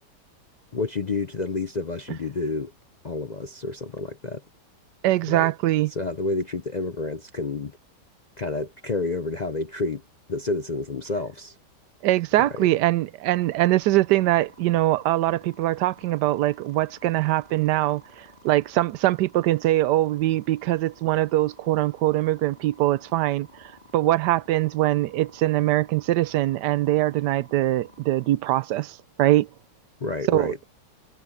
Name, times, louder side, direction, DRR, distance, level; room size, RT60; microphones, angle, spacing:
voice 1, 0.7-2.7 3.0-4.4 5.3-5.5 5.9-7.7 8.4-10.0 10.3-11.5 30.0-30.6, left 3 dB, 45° left, 0.5 m, -29 dB
voice 2, 5.0-5.9 12.0-29.5 30.3-30.5, right 15 dB, 90° right, 1.2 m, -22 dB
sound 1, 13.3-28.4, left 1 dB, 30° left, 2.2 m, -53 dB
omnidirectional pair, 1.8 m